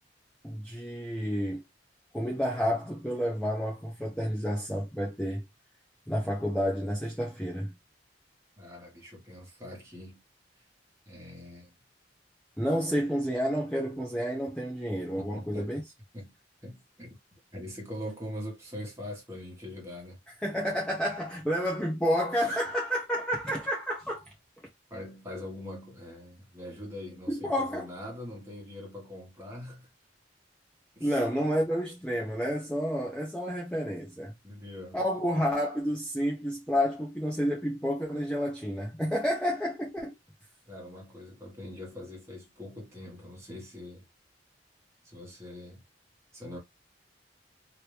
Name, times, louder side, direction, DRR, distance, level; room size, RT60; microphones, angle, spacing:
voice 1, 0.4-1.6 2.1-5.4 6.1-7.7 12.6-15.8 20.4-24.2 27.3-27.9 31.0-34.3 34.9-40.1, equal, 5° left, 0.8 m, -30 dB
voice 2, 8.6-10.2 11.1-11.7 15.2-15.8 16.1-16.3 16.6-17.1 17.5-20.2 24.9-29.9 31.0-31.2 34.4-35.0 40.7-44.0 45.0-45.8 46.3-46.6, left 1 dB, 15° right, 1.6 m, -42 dB
3.0 x 2.9 x 3.3 m
head